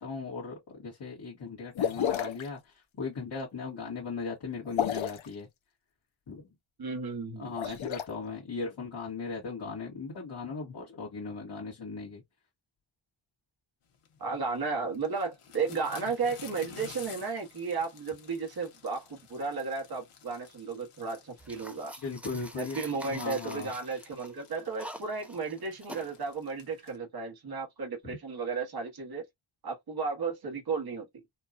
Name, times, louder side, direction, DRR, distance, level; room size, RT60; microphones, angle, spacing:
voice 1, 0.0-5.5 6.3-6.5 7.4-12.2 22.0-22.8 23.1-23.7 28.0-28.2, left 4 dB, 55° left, 1.3 m, -38 dB
sound 1, 1.8-2.5 4.7-5.3 7.4-8.0, left 9 dB, 70° left, 0.7 m, -30 dB
voice 2, 6.8-7.8 14.2-22.0 22.6-29.2 29.6-31.2, right 4 dB, 50° right, 1.2 m, -34 dB
sound 2, 13.9-27.0, left 7 dB, 85° left, 1.2 m, -53 dB
sound 3, 21.4-26.1, equal, 5° right, 0.4 m, -46 dB
4.3 x 2.3 x 2.5 m
wide cardioid pair, 130°, 50 cm